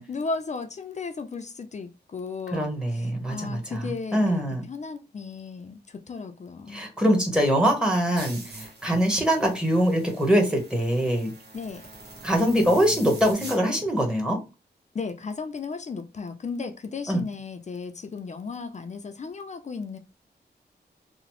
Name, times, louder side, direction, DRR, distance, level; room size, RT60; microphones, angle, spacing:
voice 1, 0.1-6.8 11.5-11.8 14.9-20.0, left 4 dB, 40° left, 0.4 m, -35 dB
voice 2, 2.5-4.6 6.7-11.3 12.2-14.4 17.1-17.2, equal, 5° right, 0.9 m, -23 dB
sound 1, 8.2-13.6, right 2 dB, 70° right, 1.1 m, -43 dB
2.8 x 2.0 x 2.9 m
wide cardioid pair, 100°, 18 cm